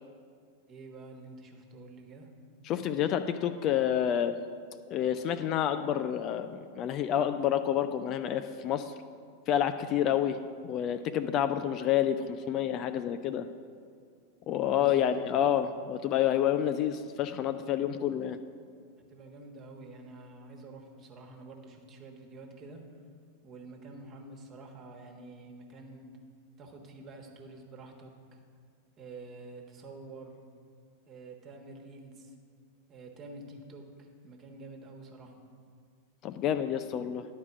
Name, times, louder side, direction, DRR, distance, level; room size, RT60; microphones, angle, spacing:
voice 1, 0.7-2.3 14.6-15.1 19.1-22.8 23.4-26.0 26.6-28.4 29.0-30.4 31.1-32.3 32.9-35.3, right 3 dB, 30° right, 3 dB, 1.3 m, -48 dB
voice 2, 2.6-4.4 4.9-8.9 9.5-10.4 10.6-13.5 14.5-18.4 36.2-37.2, left 10 dB, 35° left, 9 dB, 0.4 m, -29 dB
11.0 x 4.8 x 7.0 m, 2.1 s
figure-of-eight pair, 90°, 0 cm